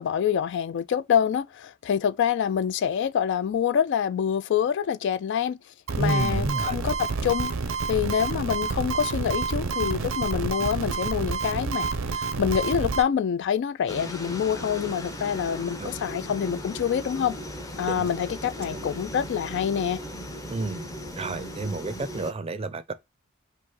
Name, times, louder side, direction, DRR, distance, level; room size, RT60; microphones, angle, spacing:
voice 1, 0.0-5.6 6.0-7.5 7.9-17.4 17.8-20.0, left 8 dB, 60° left, 0.3 m, -26 dB
sound 1, 5.9-13.0, right 4 dB, 80° right, 0.6 m, -28 dB
voice 2, 6.0-6.8 15.8-15.9 17.9-18.1 18.7-18.8 20.5-20.9 21.2-22.9, right 3 dB, 30° right, 0.5 m, -30 dB
sound 2, 13.9-22.3, equal, 15° left, 0.7 m, -37 dB
5.2 x 2.1 x 3.6 m
head